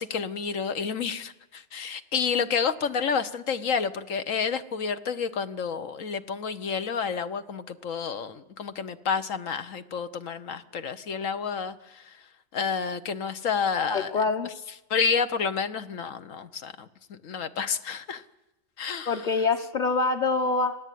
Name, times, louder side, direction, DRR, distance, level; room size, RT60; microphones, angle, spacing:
voice 1, 0.0-12.3 12.5-14.5 14.9-18.2 18.8-19.3, left 6 dB, 75° left, 10 dB, 1.4 m, -30 dB
voice 2, 13.9-14.5 19.1-20.8, left 4 dB, 35° left, 2 dB, 1.2 m, -25 dB
26.0 x 18.0 x 9.3 m, 0.98 s
omnidirectional pair, 1.4 m